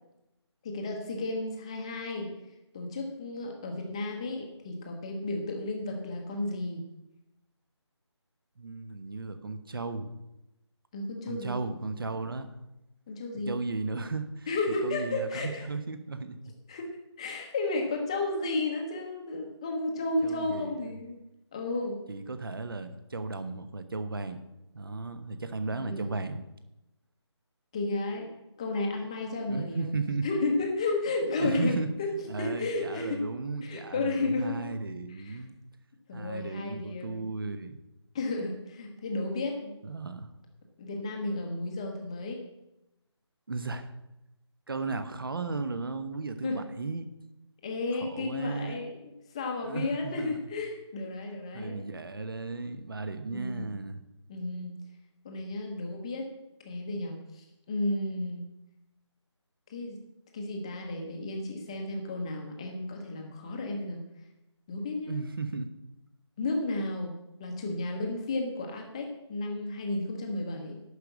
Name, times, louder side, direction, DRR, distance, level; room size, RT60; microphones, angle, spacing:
voice 1, 0.6-2.3 2.7-6.9 10.9-11.6 13.1-13.5 14.5-15.7 16.7-16.9 17.2-21.2 21.5-22.0 25.7-26.2 27.7-28.3 28.6-29.9 30.2-32.1 32.4-33.2 33.6-34.6 35.1-35.4 36.1-37.2 38.1-39.7 40.8-42.4 46.4-46.6 47.6-51.8 53.3-53.7 54.3-54.7 55.2-56.3 56.6-58.5 59.7-60.0 60.3-64.1 64.7-65.2 66.4-67.1 67.4-70.8, left 2 dB, 10° left, 2 dB, 0.9 m, -33 dB
voice 2, 8.6-10.1 11.3-12.5 13.3-14.5 14.8-16.5 20.2-21.0 22.1-24.4 24.7-26.4 29.5-30.3 31.4-31.9 32.3-35.5 36.1-37.8 39.8-40.3 43.5-43.9 44.7-47.1 48.0-48.8 49.6-50.3 51.5-54.0 65.1-65.7, right 3 dB, 50° right, 10 dB, 1.1 m, -35 dB
11.5 x 5.1 x 8.2 m, 0.92 s
figure-of-eight pair, 170°, 15 cm